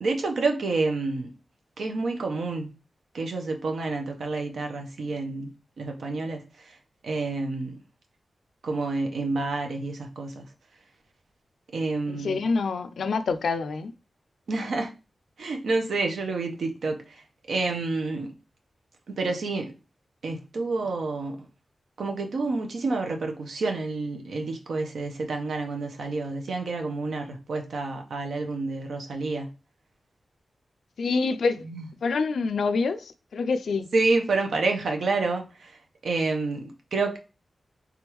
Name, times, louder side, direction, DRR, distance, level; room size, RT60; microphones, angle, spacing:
voice 1, 0.0-1.3 1.8-2.7 3.1-5.5 5.8-6.8 7.0-7.8 8.6-10.4 11.7-12.4 14.5-14.9 15.4-18.3 19.1-19.7 20.2-21.4 22.0-29.5 31.6-31.9 33.9-37.2, right 3 dB, 85° right, 0.8 m, -29 dB
voice 2, 12.1-13.9 31.0-31.6 32.0-33.9, left 4 dB, 90° left, 0.3 m, -26 dB
3.7 x 3.5 x 3.0 m
wide cardioid pair, 85°, 0 cm